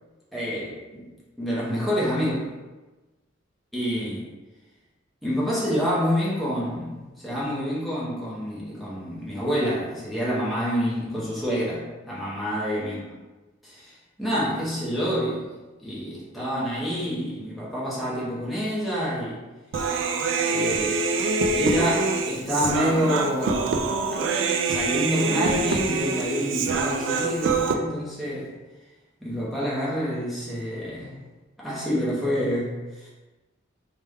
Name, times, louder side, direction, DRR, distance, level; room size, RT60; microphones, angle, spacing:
voice 1, 0.3-1.1 1.4-2.5 3.7-4.3 5.2-13.1 13.6-15.4 15.8-19.4 20.5-21.0 21.6-23.8 24.1-24.3 24.6-28.5 29.2-31.2 31.6-33.1, equal, ahead, -8 dB, 0.7 m, -27 dB
Human voice, 19.7-27.7, right 4 dB, 75° right, 0.3 m, -25 dB
3.3 x 2.2 x 3.4 m, 1.2 s
head